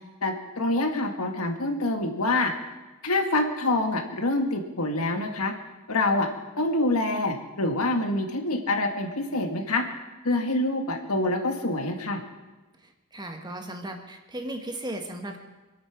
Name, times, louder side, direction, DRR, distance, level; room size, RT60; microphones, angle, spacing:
voice 1, 0.2-2.5 3.0-5.5 5.9-6.3 6.6-9.8 10.2-12.2, left 2 dB, 85° left, 5 dB, 1.8 m, -26 dB
voice 2, 13.1-15.4, right 1 dB, 20° right, 4 dB, 1.6 m, -36 dB
24.5 x 8.6 x 6.0 m, 1.1 s
head